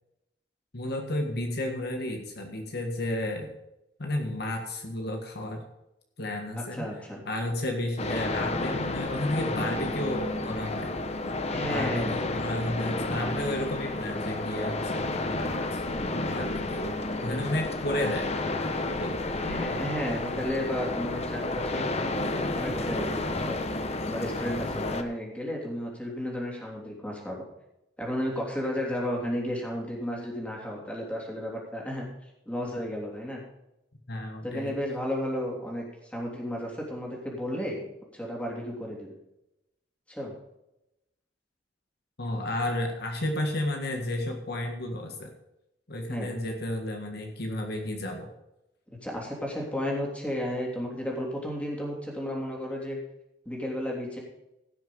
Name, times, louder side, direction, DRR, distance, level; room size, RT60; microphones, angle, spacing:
voice 1, 0.7-3.5 4.0-5.6 6.2-7.0 7.2-10.9 11.5-15.8 16.3-19.2 34.1-34.7 42.2-45.3 45.9-48.3, left 1 dB, 60° left, 3 dB, 1.7 m, -32 dB
voice 2, 6.5-7.2 11.5-12.4 19.4-22.2 22.5-23.6 24.0-27.4 28.0-32.1 32.4-33.4 34.4-37.8 38.1-39.1 40.1-40.3 46.1-46.4 49.0-53.0 53.4-54.2, equal, 5° left, -2 dB, 3.3 m, -33 dB
sound 1, 8.0-25.0, left 2 dB, 35° left, 1.0 m, -31 dB
16.5 x 6.5 x 5.5 m, 0.89 s
head